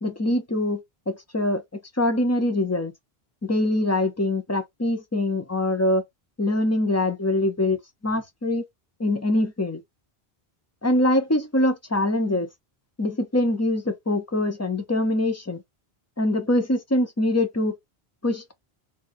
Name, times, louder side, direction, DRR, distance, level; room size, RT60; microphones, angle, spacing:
voice 1, 0.0-1.6 2.0-2.9 3.4-6.0 6.4-8.7 9.0-9.8 10.8-12.5 13.0-15.6 16.2-17.7 18.2-18.5, left 1 dB, 25° left, 0.4 m, -24 dB
3.4 x 2.5 x 2.6 m
omnidirectional pair, 1.0 m